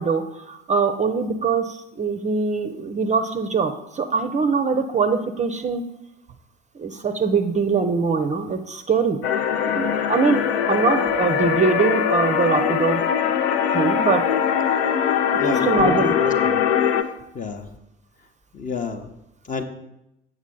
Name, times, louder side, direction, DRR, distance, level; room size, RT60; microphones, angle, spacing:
voice 1, 0.0-5.8 6.8-9.2 9.6-10.4 10.7-13.0 13.7-14.2 15.5-16.1, right 4 dB, 20° right, 8 dB, 0.6 m, -22 dB
sound 1, 9.2-17.0, left 8 dB, 65° left, 0.6 m, -21 dB
voice 2, 15.4-16.6 17.3-17.6 18.5-19.0 19.5-19.6, left 4 dB, 25° left, 8 dB, 0.8 m, -29 dB
8.2 x 6.1 x 3.8 m, 0.86 s
figure-of-eight pair, 60°, 33 cm